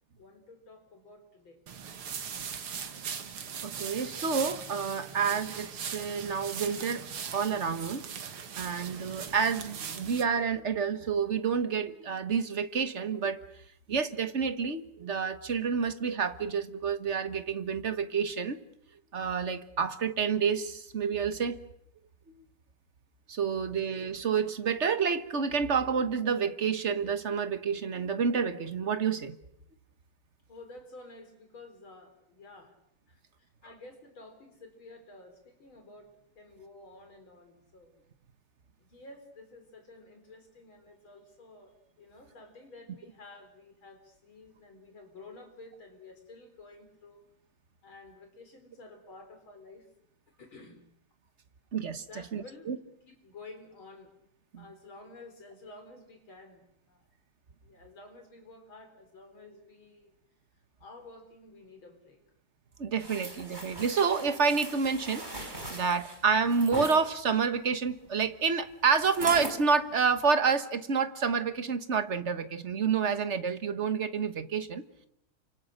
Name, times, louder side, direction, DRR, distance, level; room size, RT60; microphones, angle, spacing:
voice 1, 0.2-1.6 30.5-32.8 33.1-38.0 38.8-47.2 47.8-49.9 50.4-50.8 52.0-52.8 53.0-54.1 54.6-57.1 57.6-60.1 60.8-62.2, left 2 dB, 70° left, 6 dB, 5.1 m, -51 dB
sound 1, 1.7-10.2, right 7 dB, 90° right, 2.5 m, -40 dB
voice 2, 3.6-7.1 7.3-8.0 8.6-13.4 13.9-18.6 19.1-21.6 23.3-29.4 51.7-52.0 52.3-52.8 54.5-54.6 62.8-65.2 65.7-74.8, right 6 dB, 40° right, 10 dB, 1.4 m, -29 dB
sound 2, 63.0-67.0 69.0-69.6 70.1-70.3, right 1 dB, 20° right, 4.2 m, -40 dB
29.5 x 25.5 x 6.6 m, 0.74 s
omnidirectional pair, 2.3 m